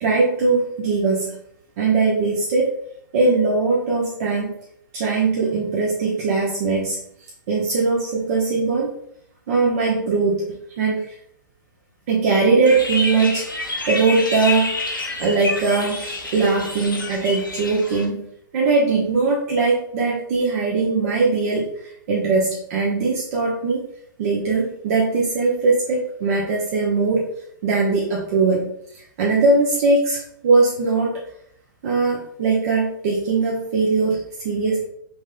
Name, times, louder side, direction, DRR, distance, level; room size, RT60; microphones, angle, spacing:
voice 1, 0.0-1.4 1.8-2.7 3.1-4.6 4.9-7.0 7.5-8.9 9.5-10.5 10.8-11.1 12.1-14.7 15.2-21.7 22.1-23.9 24.2-27.3 27.6-28.7 29.2-31.2 31.8-34.8, right 3 dB, 45° right, -4 dB, 1.1 m, -20 dB
sound 1, 12.6-18.1, left 2 dB, 85° left, 1.0 m, -28 dB
5.9 x 3.7 x 2.3 m, 0.67 s
figure-of-eight pair, 110°, 11 cm